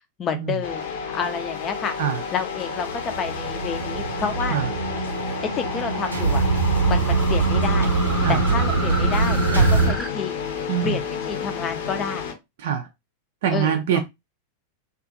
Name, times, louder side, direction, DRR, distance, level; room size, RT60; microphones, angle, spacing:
voice 1, 0.2-0.8 1.1-2.0 2.3-4.6 5.5-6.4 6.9-7.9 8.3-10.3 10.8-11.0 11.3-12.3 13.5-14.0, left 6 dB, 30° left, 0.5 m, -29 dB
sound 1, 0.6-12.3, left 6 dB, 60° left, 0.7 m, -32 dB
sound 2, 2.5-10.1, right 1 dB, 5° right, 0.8 m, -35 dB
sound 3, 2.9-9.9, right 3 dB, 85° right, 0.7 m, -22 dB
voice 2, 10.7-11.0 12.6-12.9 13.4-14.0, right 9 dB, 55° right, 0.4 m, -24 dB
2.5 x 2.4 x 2.5 m
figure-of-eight pair, 90°, 0 cm